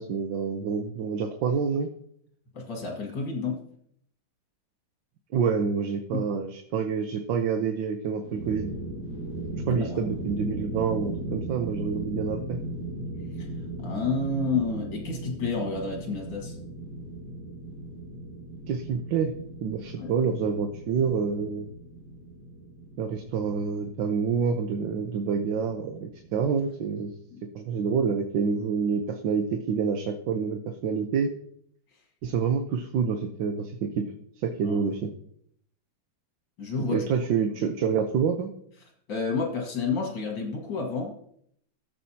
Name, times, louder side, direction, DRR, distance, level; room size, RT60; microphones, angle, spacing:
voice 1, 0.0-1.9 5.3-8.7 9.7-12.6 18.7-19.3 19.6-21.7 23.0-27.1 27.5-31.3 32.2-34.1 34.4-35.1 36.9-38.5, right 6 dB, 75° right, 5 dB, 1.5 m, -27 dB
voice 2, 2.5-3.6 6.1-6.2 9.9-10.0 13.4-13.5 13.8-16.6 20.0-20.1 27.3-27.4 34.6-34.8 36.6-37.0 39.1-41.2, left 4 dB, 65° left, 1 dB, 2.3 m, -30 dB
sound 1, 8.2-27.0, right 1 dB, 60° right, 2.3 m, -38 dB
16.5 x 7.4 x 2.8 m, 0.69 s
omnidirectional pair, 2.0 m